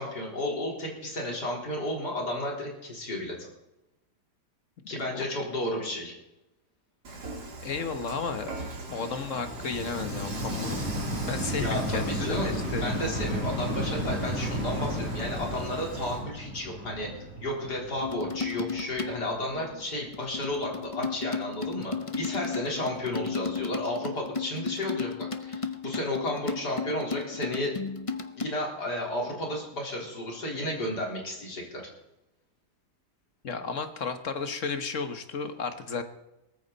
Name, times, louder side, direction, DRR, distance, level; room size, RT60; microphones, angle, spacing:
voice 1, 0.0-3.5 4.9-6.2 11.6-27.7 28.4-31.8, left 1 dB, 75° left, -1 dB, 4.5 m, -33 dB
voice 2, 4.8-5.3 7.6-8.5 8.9-10.8 11.3-12.9 19.5-19.8 33.4-36.0, left 5 dB, 50° left, 8 dB, 1.5 m, -33 dB
Dishes pots and pans / Frying (food), 7.0-16.2, right 3 dB, 70° right, 2.9 m, -41 dB
sound 1, 8.6-19.9 20.5-20.6, equal, 30° right, 4.5 m, -34 dB
sound 2, 18.0-19.3 20.1-28.5, left 5 dB, 30° left, 0.6 m, -34 dB
18.5 x 14.5 x 4.1 m, 0.92 s
omnidirectional pair, 1.8 m